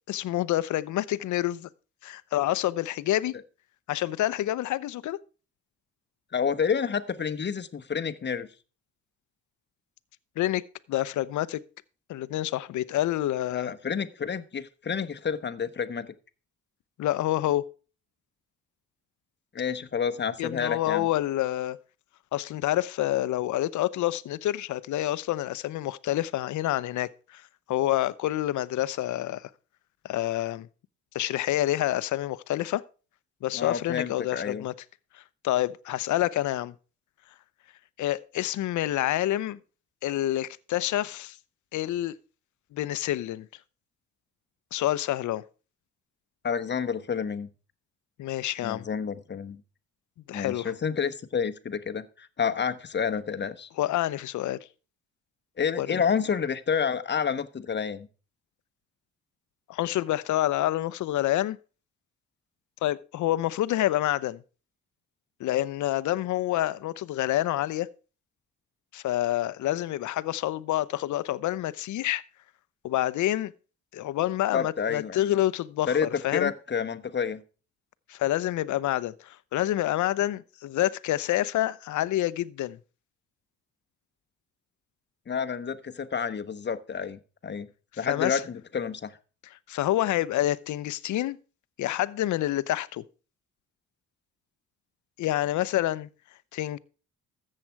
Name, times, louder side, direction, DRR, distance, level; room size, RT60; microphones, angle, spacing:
voice 1, 0.1-1.7 2.0-3.4 3.9-5.2 10.4-10.6 10.9-11.6 12.1-13.7 17.0-17.7 20.4-21.8 22.3-27.4 27.7-29.5 30.0-30.7 31.1-32.8 33.4-34.7 35.1-36.7 38.0-39.6 40.0-41.4 41.7-42.2 42.7-43.5 44.7-45.4 48.2-48.9 50.3-50.7 53.8-54.6 55.8-56.0 59.7-61.6 62.8-64.4 65.4-67.9 68.9-72.2 72.8-73.5 73.9-76.5 78.1-82.8 88.1-88.4 89.7-91.4 91.8-93.0 95.2-96.1 96.5-96.8, left 14 dB, 75° left, 0.7 m, -28 dB
voice 2, 6.3-8.5 13.5-16.1 19.5-21.1 33.5-34.7 46.4-47.5 48.6-49.6 50.3-53.7 55.6-58.1 74.5-75.3 75.9-77.4 85.3-87.7 88.0-89.2, left 6 dB, 35° left, 1.1 m, -29 dB
14.0 x 7.7 x 4.6 m
cardioid pair, 90°, 30 cm